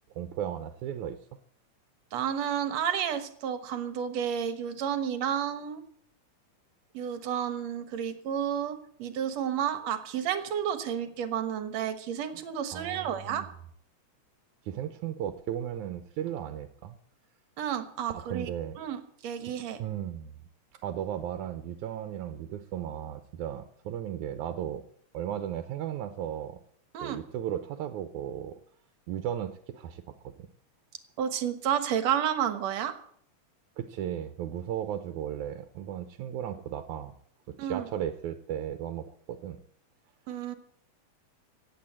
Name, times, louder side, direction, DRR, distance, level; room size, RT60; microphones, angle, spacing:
voice 1, 0.1-1.2 12.7-13.4 14.6-17.0 18.1-18.8 19.8-20.3 20.8-24.8 25.1-26.6 27.0-28.6 29.1-30.5 33.8-37.1 37.5-39.6, right 10 dB, 85° right, 9 dB, 2.3 m, -35 dB
voice 2, 2.1-5.8 6.9-13.5 17.6-18.5 18.8-19.8 26.9-27.2 31.2-32.9 37.6-37.9 40.3-40.6, right 9 dB, 70° right, 10 dB, 2.4 m, -31 dB
16.5 x 8.7 x 8.5 m, 0.65 s
omnidirectional pair, 3.3 m